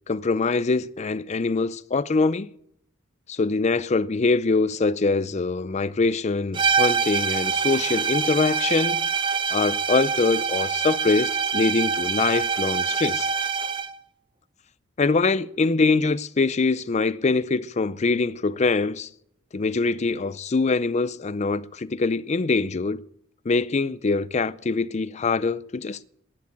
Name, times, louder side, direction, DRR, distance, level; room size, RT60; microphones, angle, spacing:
voice 1, 0.1-2.5 3.3-9.1 9.5-13.3 15.0-19.1 19.5-23.0 23.5-26.0, left 3 dB, 35° left, 0.5 m, -23 dB
sound 1, 6.5-14.0, right 6 dB, 25° right, 0.5 m, -25 dB
11.5 x 9.8 x 8.5 m
head